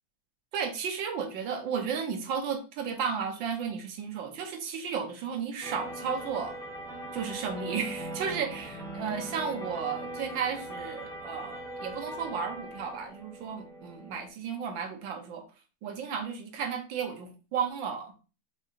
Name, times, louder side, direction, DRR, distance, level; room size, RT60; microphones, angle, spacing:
voice 1, 0.5-6.6 7.1-15.4 15.8-18.1, right 6 dB, 75° right, 4 dB, 1.5 m, -33 dB
sound 1, 5.6-14.3, right 1 dB, 5° left, 0.7 m, -40 dB
5.4 x 2.4 x 2.8 m, 0.34 s
omnidirectional pair, 2.1 m